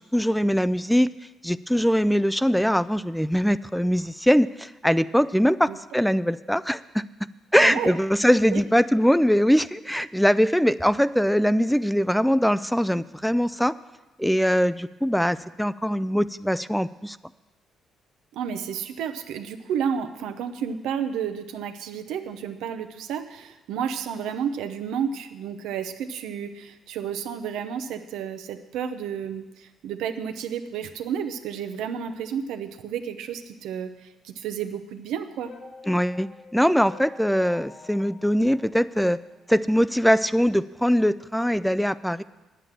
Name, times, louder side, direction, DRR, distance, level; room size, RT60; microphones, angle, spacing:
voice 1, 0.1-1.1 1.4-7.0 7.5-13.7 14.2-17.2 35.9-39.2 39.5-42.2, equal, ahead, 16 dB, 0.3 m, -22 dB
voice 2, 7.6-8.0 8.5-8.6 18.3-33.9 34.2-35.5, right 8 dB, 90° right, 8 dB, 0.8 m, -31 dB
sound 1, 35.5-39.7, left 4 dB, 60° left, 2.1 m, -47 dB
9.9 x 9.0 x 7.5 m, 1.1 s
cardioid pair, 100°, 0 cm